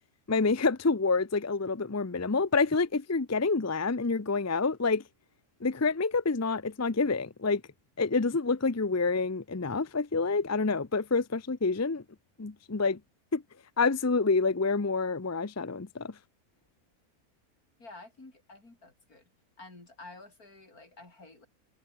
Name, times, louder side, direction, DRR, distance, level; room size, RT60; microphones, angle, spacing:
voice 1, 0.3-5.0 5.6-7.6 8.0-12.0 12.4-13.0 13.3-13.4 13.8-16.1, left 4 dB, 15° left, 0.5 m, -27 dB
voice 2, 17.8-19.3 19.6-21.5, left 2 dB, 80° left, 5.7 m, -50 dB
omnidirectional pair, 1.6 m